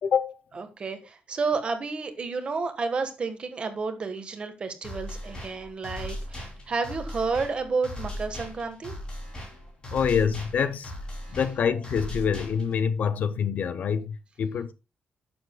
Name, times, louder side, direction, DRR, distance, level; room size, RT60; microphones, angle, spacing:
voice 1, 0.0-0.4 9.9-10.9 11.3-14.7, left 7 dB, 55° left, 0.6 m, -26 dB
voice 2, 0.5-9.0, right 4 dB, 35° right, 1.3 m, -31 dB
sound 1, 4.8-12.8, equal, 30° left, 2.9 m, -38 dB
10.5 x 7.2 x 2.2 m
wide cardioid pair, 170°, 3 cm